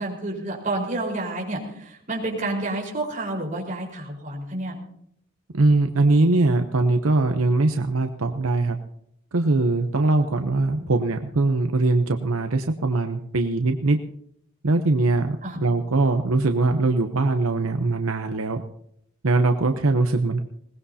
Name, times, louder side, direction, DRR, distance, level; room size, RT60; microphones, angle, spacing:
voice 1, 0.0-4.7 10.8-10.9 15.4-15.6, right 2 dB, 35° right, -2 dB, 4.5 m, -29 dB
voice 2, 5.5-8.8 9.3-14.0 14.6-18.6 19.2-20.4, right 2 dB, 75° right, 6 dB, 0.8 m, -21 dB
21.0 x 18.5 x 2.8 m, 0.71 s
head